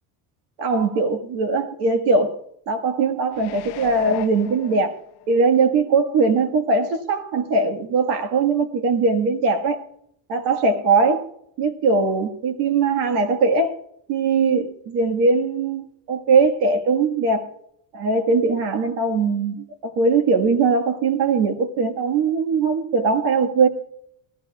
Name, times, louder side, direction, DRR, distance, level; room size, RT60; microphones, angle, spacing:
voice 1, 0.6-2.4 2.7-5.0 5.3-9.8 10.3-11.3 11.6-13.8 14.1-17.5 17.9-23.7, right 4 dB, 65° right, 1.7 m, -20 dB
sound 1, 3.3-5.4 5.9-6.0, left 14 dB, 60° left, 0.8 m, -34 dB
19.5 x 14.5 x 2.3 m
cardioid pair, 155°, 44 cm